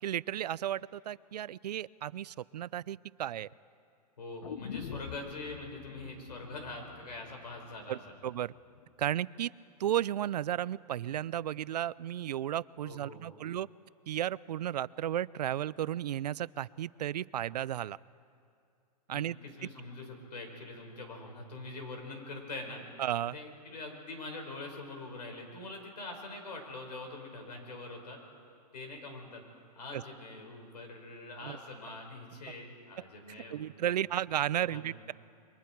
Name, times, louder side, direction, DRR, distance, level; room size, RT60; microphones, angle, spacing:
voice 1, 0.0-3.5 7.9-8.5 9.0-9.5 9.8-13.7 14.1-18.0 19.1-19.4 23.0-23.4 29.9-30.0 31.4-31.6 33.5-35.1, right 11 dB, 80° right, 21 dB, 0.5 m, -34 dB
voice 2, 4.2-8.0 12.8-13.4 19.1-22.8 23.3-28.2 28.7-29.4 29.8-34.0 34.6-35.0, left 2 dB, 85° left, 3 dB, 5.2 m, -44 dB
sound 1, 4.4-8.5 8.8-8.9, left 8 dB, 60° left, 0.9 m, -46 dB
28.0 x 23.0 x 4.6 m, 2.4 s
hypercardioid pair, 175°, 21 cm